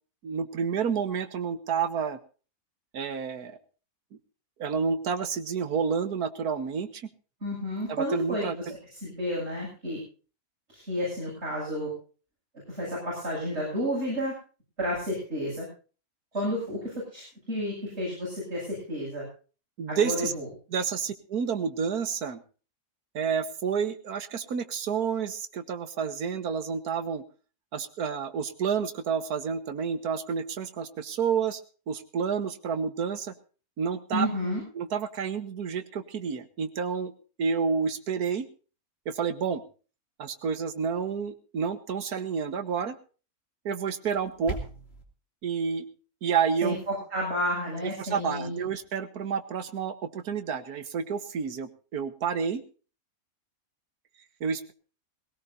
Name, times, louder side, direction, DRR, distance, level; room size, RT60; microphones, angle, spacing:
voice 1, 0.2-2.2 2.9-3.6 4.6-7.1 7.9-8.6 19.8-20.3 20.7-22.4 23.2-27.2 27.7-31.6 31.9-33.3 33.8-34.3 34.8-37.1 37.4-38.5 39.1-39.6 40.2-43.0 43.7-44.6 45.4-45.9 46.2-46.8 48.0-52.6 54.4-54.7, right 6 dB, 85° right, 11 dB, 1.8 m, -29 dB
voice 2, 7.4-8.7 9.0-10.0 10.7-11.9 12.7-14.3 14.8-15.7 16.3-19.3 19.9-20.5 34.1-34.6 46.6-48.6, equal, 45° right, -5 dB, 8.2 m, -31 dB
sound 1, 44.0-45.0, equal, 45° left, 2.9 m, -38 dB
20.0 x 18.0 x 2.7 m, 0.37 s
omnidirectional pair, 1.6 m